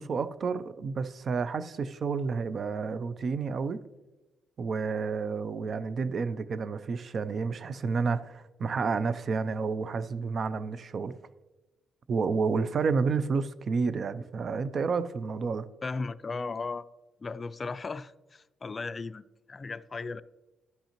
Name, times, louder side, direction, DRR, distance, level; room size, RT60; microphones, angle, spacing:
voice 1, 0.0-3.8 4.6-11.1 12.1-15.7, right 5 dB, 50° right, 0.4 m, -30 dB
voice 2, 15.8-16.9 17.2-20.2, left 4 dB, 30° left, 0.3 m, -36 dB
13.0 x 5.4 x 2.9 m
cardioid pair, 90°, 0 cm